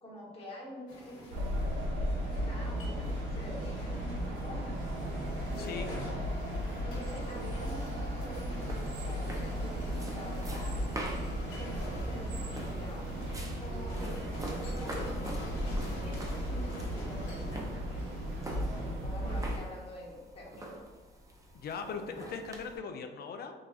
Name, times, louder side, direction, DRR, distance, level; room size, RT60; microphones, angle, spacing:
voice 1, 0.0-1.8 2.4-4.8 5.6-6.1 6.8-11.1 11.6-13.3 13.6-15.4 16.0-18.3 18.7-20.8 21.8-22.4, left 1 dB, 30° left, -6 dB, 1.0 m, -47 dB
sound 1, 0.9-18.9, left 2 dB, 90° left, 0.8 m, -46 dB
sound 2, 1.3-19.6, equal, 75° right, 0.6 m, -36 dB
voice 2, 5.6-5.9 21.5-23.5, left 5 dB, 55° left, 6 dB, 0.4 m, -39 dB
sound 3, 7.2-22.8, right 1 dB, 15° right, 0.5 m, -45 dB
4.0 x 2.3 x 2.3 m, 1.4 s
cardioid pair, 90°, 20 cm